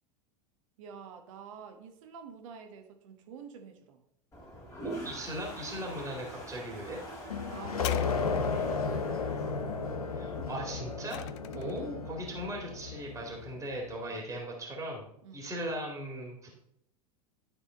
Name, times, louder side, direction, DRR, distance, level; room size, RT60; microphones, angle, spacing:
voice 1, 0.8-4.0 7.5-9.6 11.5-12.0 14.0-14.3 15.2-15.5, right 6 dB, 55° right, 5 dB, 1.3 m, -48 dB
Toilet flush, 4.3-10.5, right 1 dB, 15° left, 2.5 m, -44 dB
voice 2, 4.8-7.0 10.1-11.3 11.5-15.1 15.3-16.5, right 1 dB, 15° right, -1 dB, 2.2 m, -38 dB
sound 1, 7.3-13.7, left 5 dB, 75° left, 0.7 m, -34 dB
sound 2, 7.8-8.8 10.5-11.9 12.7-12.8, left 13 dB, 50° left, 0.4 m, -42 dB
12.5 x 4.1 x 3.8 m, 0.75 s
figure-of-eight pair, 85°, 19 cm